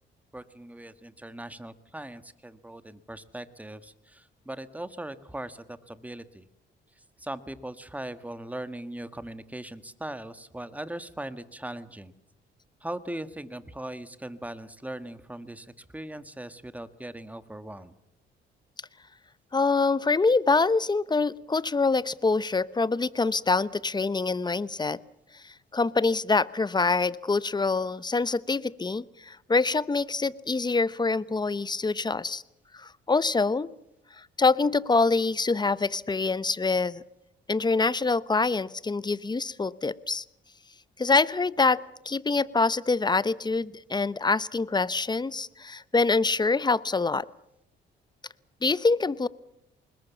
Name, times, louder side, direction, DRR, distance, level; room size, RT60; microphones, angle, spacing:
voice 1, 0.3-6.5 6.9-12.1 12.8-17.9, right 1 dB, 5° right, 12 dB, 1.6 m, -39 dB
voice 2, 19.5-25.0 25.3-32.4 32.7-33.7 34.2-37.0 37.5-40.2 41.0-41.8 42.0-47.3 48.6-49.3, left 3 dB, 20° left, 17 dB, 0.9 m, -25 dB
24.5 x 21.0 x 7.3 m, 0.79 s
cardioid pair, 90°, 20 cm